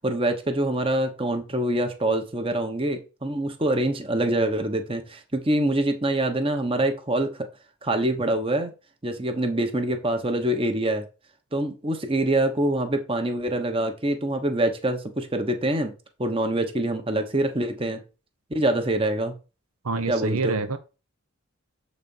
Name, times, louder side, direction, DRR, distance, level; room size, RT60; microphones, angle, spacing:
voice 1, 0.0-7.5 7.8-8.7 9.0-11.0 11.5-15.9 16.2-18.0 18.5-19.3 20.1-20.6, right 1 dB, 25° right, 5 dB, 1.0 m, -25 dB
voice 2, 19.8-20.8, right 3 dB, 80° right, 11 dB, 0.8 m, -27 dB
7.4 x 4.2 x 5.4 m, 0.31 s
head